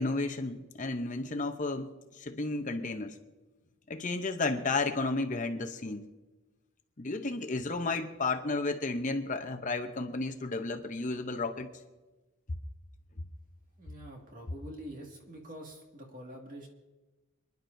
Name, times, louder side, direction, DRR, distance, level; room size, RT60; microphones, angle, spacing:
voice 1, 0.0-3.2 3.9-6.0 7.0-11.7, left 3 dB, 35° left, 0.7 m, -32 dB
voice 2, 13.8-16.7, equal, 40° right, 2.1 m, -46 dB
27.0 x 10.5 x 2.7 m
head